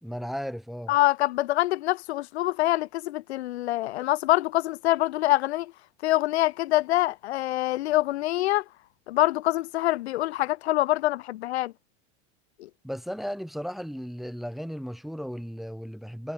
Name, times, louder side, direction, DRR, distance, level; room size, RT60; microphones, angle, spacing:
voice 1, 0.0-1.0 12.8-16.3, equal, ahead, 1.9 m, -35 dB
voice 2, 0.9-5.7 6.0-8.6 9.1-11.7 12.6-12.7, left 16 dB, 85° left, 2.4 m, -25 dB
supercardioid pair, 130°, 32 cm